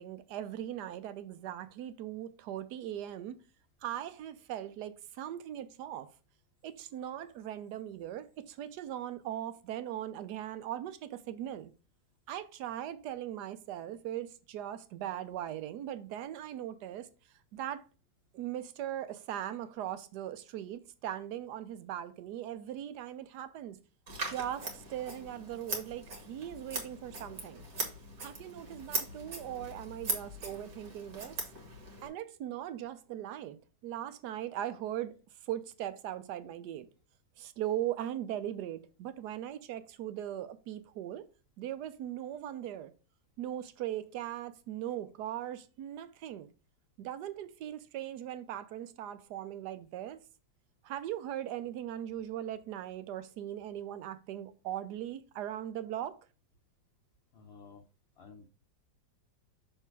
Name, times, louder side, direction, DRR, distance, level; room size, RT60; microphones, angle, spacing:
voice 1, 0.0-3.4 3.8-6.1 6.6-11.7 12.3-17.1 17.5-17.8 18.3-23.8 24.3-27.6 28.2-31.4 32.0-33.6 33.8-35.1 35.5-36.9 37.4-41.2 41.6-42.9 43.4-46.5 47.0-50.2 50.8-56.1, right 11 dB, 75° right, 1.2 m, -39 dB
Scissors, 24.1-32.1, right 2 dB, 60° right, 2.0 m, -40 dB
voice 2, 57.3-57.8 58.2-58.5, left 5 dB, 55° left, 0.7 m, -52 dB
6.3 x 3.3 x 4.6 m
omnidirectional pair, 1.9 m